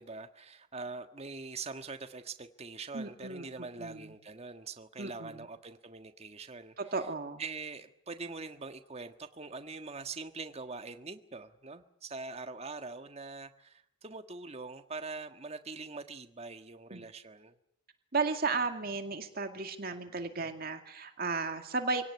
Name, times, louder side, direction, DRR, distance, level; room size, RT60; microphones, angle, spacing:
voice 1, 0.0-6.7 7.4-17.6, right 4 dB, 30° right, 8 dB, 1.6 m, -43 dB
voice 2, 2.9-3.4 3.8-4.1 5.0-5.5 6.8-7.4 16.9-17.0 18.1-22.1, right 4 dB, 50° right, 6 dB, 2.2 m, -34 dB
26.5 x 18.0 x 9.7 m, 0.73 s
head